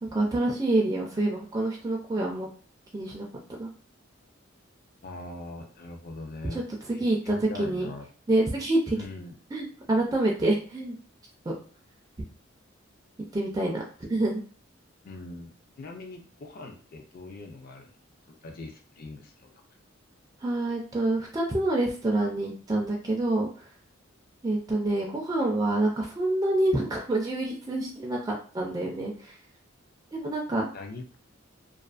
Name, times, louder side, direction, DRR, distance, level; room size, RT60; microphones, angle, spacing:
voice 1, 0.0-2.5 2.9-3.3 3.6-3.7 6.5-6.6 7.0-7.9 8.3-9.0 9.5-11.0 11.5-11.6 13.3-14.4 20.4-23.7 24.4-29.4 30.1-30.7, right 2 dB, 20° right, -1 dB, 0.3 m, -27 dB
voice 2, 5.0-6.6 6.9-8.1 8.9-9.4 15.0-15.5 15.8-17.9 18.4-19.5 30.7-31.2, left 2 dB, 50° left, 4 dB, 0.4 m, -41 dB
2.4 x 2.3 x 2.3 m, 0.40 s
head